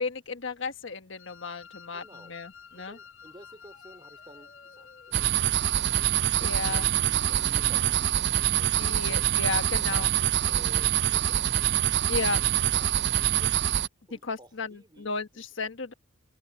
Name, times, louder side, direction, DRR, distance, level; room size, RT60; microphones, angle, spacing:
voice 1, 0.0-3.0 6.4-6.9 8.8-10.1 12.1-12.4 14.2-15.9, left 4 dB, 70° left, 1.4 m, -34 dB
Wind instrument woodwind instrument, 1.2-7.9, left 6 dB, 85° left, 7.0 m, -51 dB
voice 2, 1.9-2.4 2.7-5.2 6.0-6.9 7.3-8.1 8.5-9.3 9.6-11.5 12.2-13.5 14.1-15.4, right 1 dB, 20° right, 2.6 m, -52 dB
sound 1, 2.5-13.9, left 1 dB, 45° left, 1.4 m, -53 dB
sound 2, 5.1-13.9, right 11 dB, 55° right, 0.4 m, -25 dB
open air
head